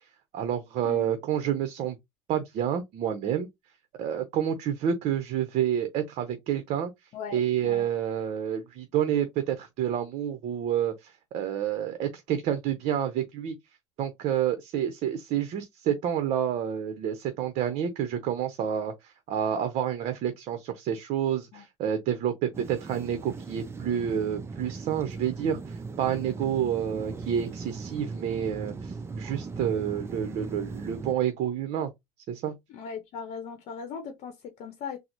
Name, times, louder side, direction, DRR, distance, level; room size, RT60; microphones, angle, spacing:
voice 1, 0.3-2.0 2.3-3.5 4.0-6.9 7.3-13.5 14.0-31.9 32.3-32.5, right 9 dB, 60° right, 0.7 m, -29 dB
voice 2, 7.1-7.9 21.5-21.6 32.7-35.0, left 6 dB, 55° left, 0.8 m, -39 dB
sound 1, 22.5-31.1, right 4 dB, 20° right, 0.5 m, -38 dB
3.8 x 2.0 x 2.9 m
cardioid pair, 115°, 13 cm